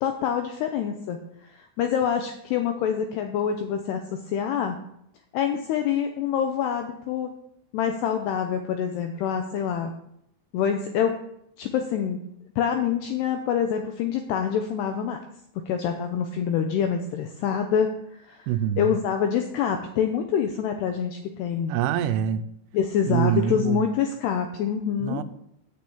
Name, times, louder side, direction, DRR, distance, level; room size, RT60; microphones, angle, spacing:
voice 1, 0.0-4.8 5.3-7.3 7.7-9.9 10.5-11.1 11.6-12.2 12.6-15.2 15.6-18.5 18.8-21.7 22.7-25.2, left 8 dB, 85° left, 2.4 m, -26 dB
voice 2, 18.5-19.0 21.7-22.4 23.1-23.9 25.0-25.2, right 10 dB, 90° right, 3.3 m, -25 dB
10.5 x 6.4 x 8.5 m
omnidirectional pair, 5.7 m